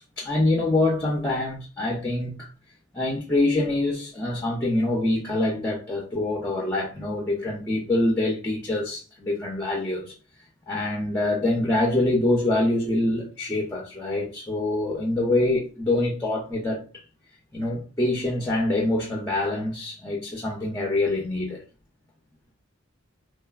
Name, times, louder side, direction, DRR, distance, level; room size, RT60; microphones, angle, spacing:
voice 1, 0.0-2.5 2.9-10.1 10.7-16.8 17.5-21.6, left 2 dB, 10° left, 0.4 m, -25 dB
3.1 x 2.0 x 2.3 m
head